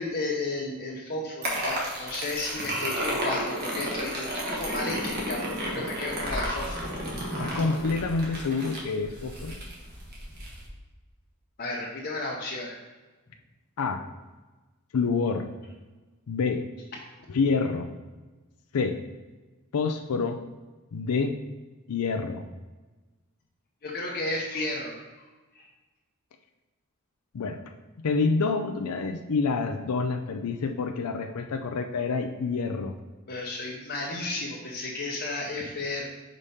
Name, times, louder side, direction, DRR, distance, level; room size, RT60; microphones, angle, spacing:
voice 1, 0.0-6.8 11.6-12.8 23.8-25.7 33.3-36.0, left 2 dB, 45° left, -3 dB, 0.8 m, -33 dB
sound 1, 1.4-10.7, equal, 45° right, 1.5 m, -32 dB
voice 2, 7.4-9.6 13.8-14.0 14.9-15.5 16.3-16.6 17.3-17.9 18.7-19.0 19.7-20.4 20.9-21.3 21.9-22.4 27.3-27.6 28.0-32.9, left 4 dB, 85° left, 4 dB, 0.5 m, -27 dB
5.2 x 5.0 x 4.1 m, 1.2 s
head